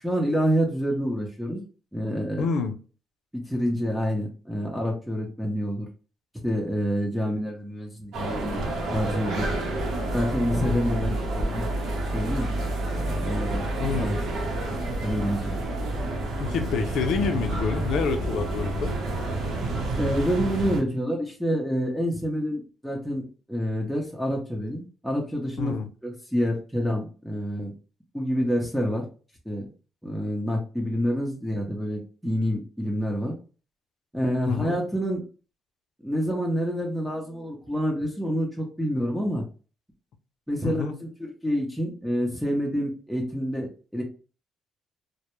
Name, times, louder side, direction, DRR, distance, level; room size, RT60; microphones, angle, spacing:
voice 1, 0.0-1.6 1.9-2.5 3.3-5.9 6.4-8.6 8.9-9.5 10.1-11.7 12.1-12.5 13.0-14.2 15.0-15.6 19.9-25.7 26.0-27.7 28.1-29.0 29.5-29.6 30.0-33.4 34.1-35.2 36.0-39.4 40.5-41.1 41.4-44.0, equal, ahead, 0.6 m, -27 dB
voice 2, 2.4-2.7 8.2-8.3 10.6-10.8 13.8-14.1 16.4-18.9 25.6-25.9 34.5-34.8 40.6-40.9, left 6 dB, 75° left, 0.4 m, -28 dB
sound 1, 8.1-20.8, right 2 dB, 80° right, 0.7 m, -29 dB
2.1 x 2.1 x 2.9 m
cardioid pair, 90°, 0 cm